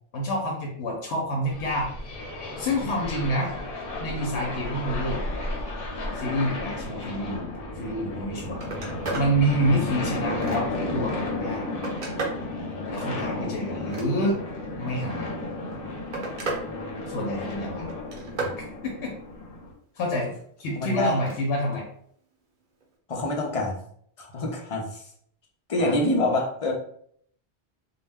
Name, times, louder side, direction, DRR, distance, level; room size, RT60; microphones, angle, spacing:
voice 1, 0.1-1.9 2.6-3.5 4.0-5.2 6.2-7.5 7.7-8.6 9.1-11.7 12.9-14.4 14.8-15.3 17.1-17.9 18.8-19.1 20.0-20.3 20.6-21.9 25.8-26.0, equal, 85° left, -1 dB, 0.9 m, -27 dB
sound 1, 1.5-19.7, left 2 dB, 60° left, 0.8 m, -33 dB
Telephone, 8.1-8.2 8.5-9.3 9.8-10.9 11.4-12.5 13.7-14.5 15.5-16.7 17.0-17.5 17.9-18.6 21.1-21.4 22.8-22.9, right 3 dB, 50° right, 0.8 m, -34 dB
voice 2, 20.8-21.2 23.1-23.8 24.2-25.0 25.7-26.7, left 1 dB, 45° left, 0 dB, 0.4 m, -26 dB
2.2 x 2.1 x 3.3 m, 0.64 s
omnidirectional pair, 1.1 m